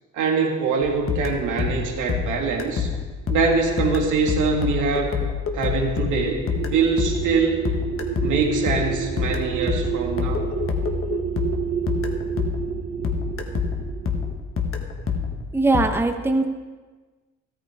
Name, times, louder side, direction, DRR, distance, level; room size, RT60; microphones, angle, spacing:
voice 1, 0.1-2.9 3.3-5.1 5.5-7.6 8.2-10.5 15.0-15.3, right 4 dB, 85° right, 0 dB, 2.2 m, -23 dB
sound 1, 0.8-12.8 13.0-15.9, left 6 dB, 45° left, 1.4 m, -27 dB
sound 2, 6.1-14.4, right 7 dB, 50° right, 1.4 m, -29 dB
voice 2, 15.5-16.5, right 2 dB, 10° right, 5 dB, 0.9 m, -20 dB
14.0 x 13.5 x 3.6 m, 1.3 s
cardioid pair, 90°, 30 cm